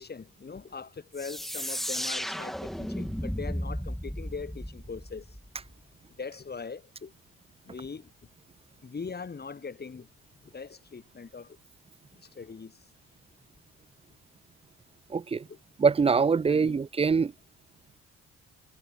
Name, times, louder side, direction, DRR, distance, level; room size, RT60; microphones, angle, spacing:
voice 1, 0.0-5.3 6.2-7.1 7.6-8.1 8.8-10.1 10.4-11.6 12.1-12.8 15.5-15.6 16.5-16.8, left 5 dB, 35° left, 4.5 m, -41 dB
sound 1, 1.2-5.7, equal, ahead, 1.1 m, -34 dB
voice 2, 15.1-15.4 15.8-17.3, right 5 dB, 20° right, 0.5 m, -23 dB
cardioid pair, 90°, 30 cm